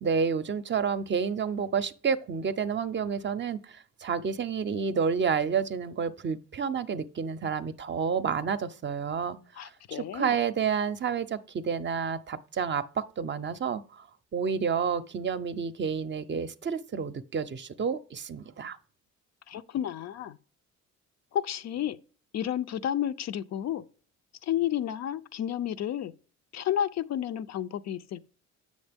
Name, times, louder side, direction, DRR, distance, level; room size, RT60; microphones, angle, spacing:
voice 1, 0.0-14.1 14.3-18.8, right 6 dB, 40° right, 0.6 m, -30 dB
voice 2, 9.6-10.4 19.5-20.4 21.3-22.0 22.3-23.8 24.4-26.1 26.5-28.3, left 10 dB, 60° left, 0.5 m, -31 dB
7.9 x 6.4 x 3.5 m
cardioid pair, 90°, 30 cm